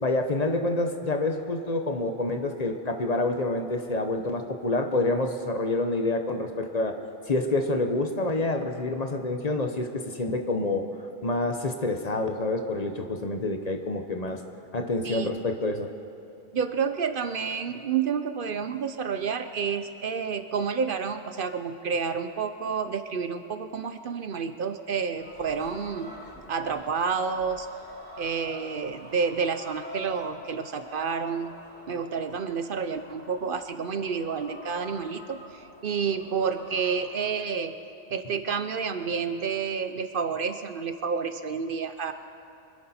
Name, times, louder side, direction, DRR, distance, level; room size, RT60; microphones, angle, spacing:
voice 1, 0.0-7.0 7.3-10.8 11.2-14.4 14.7-15.9, left 2 dB, 40° left, 5 dB, 1.0 m, -27 dB
voice 2, 16.5-26.1 26.5-27.7 28.2-31.5 31.9-37.7 38.1-42.1, right 6 dB, 60° right, 9 dB, 0.8 m, -29 dB
sound 1, 25.2-37.3, equal, 10° left, 2.5 m, -46 dB
24.5 x 11.0 x 4.3 m, 2.9 s
omnidirectional pair, 1.1 m